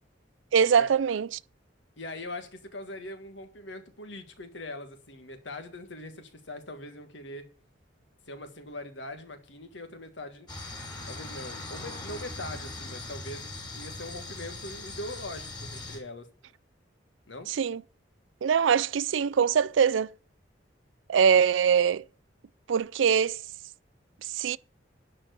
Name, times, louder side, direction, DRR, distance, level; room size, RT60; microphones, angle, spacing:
voice 1, 0.5-1.4 17.5-17.8 18.4-20.1 21.1-22.0 22.7-23.4 24.2-24.6, right 7 dB, 80° right, 0.4 m, -23 dB
voice 2, 2.0-7.5 8.3-10.5 11.1-16.3 17.3-17.5, left 1 dB, 70° left, 1.7 m, -41 dB
sound 1, 10.5-16.0, left 2 dB, 20° left, 3.2 m, -40 dB
11.0 x 4.5 x 8.1 m
head